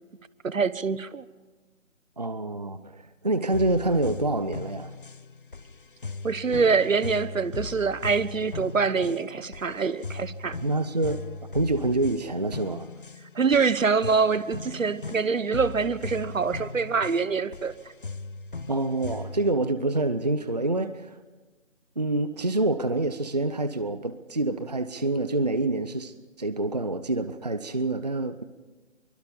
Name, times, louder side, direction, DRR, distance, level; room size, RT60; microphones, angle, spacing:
voice 1, 0.4-1.2 6.2-10.6 13.3-17.7, right 5 dB, 80° right, 1.2 m, -25 dB
voice 2, 2.2-4.9 10.6-11.2 11.5-12.9 18.7-21.2 22.0-28.4, right 2 dB, 30° right, 0.6 m, -27 dB
sound 1, 3.5-19.5, left 3 dB, 45° left, 0.6 m, -38 dB
24.0 x 22.0 x 5.3 m
figure-of-eight pair, 170°, 39 cm